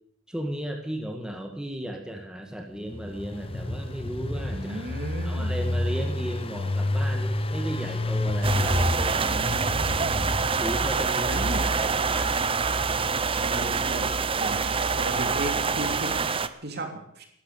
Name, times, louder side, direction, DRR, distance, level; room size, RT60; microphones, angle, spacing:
voice 1, 0.3-4.8 5.2-9.5 10.6-12.3, equal, 5° right, 2 dB, 1.7 m, -35 dB
Engine, 2.8-10.8, left 1 dB, 30° left, 1.1 m, -29 dB
voice 2, 4.5-5.6 9.3-10.4 11.2-11.7 13.4-16.1 16.6-17.3, right 1 dB, 55° right, 5 dB, 3.0 m, -35 dB
sound 1, 8.4-16.5, right 4 dB, 30° right, 0.7 m, -26 dB
13.0 x 12.0 x 8.4 m, 0.71 s
head